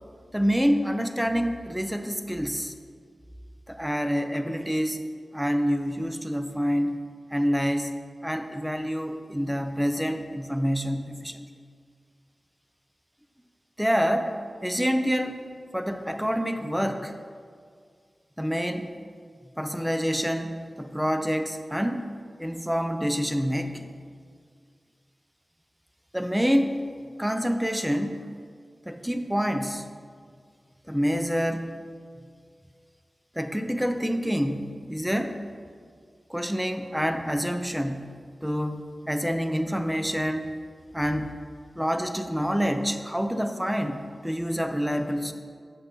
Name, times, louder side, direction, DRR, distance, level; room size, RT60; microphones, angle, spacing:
voice 1, 0.3-2.7 3.7-5.0 5.3-7.0 7.3-7.9 8.2-11.5 13.8-14.3 14.6-15.5 15.7-17.1 18.4-18.9 19.6-22.1 22.4-23.9 26.1-26.8 27.2-28.3 28.9-29.8 30.9-31.7 33.4-35.4 36.3-40.5 40.9-41.3 41.8-45.3, equal, 5° right, 7 dB, 0.5 m, -27 dB
7.0 x 5.9 x 5.3 m, 2.1 s
wide cardioid pair, 105°, 0 cm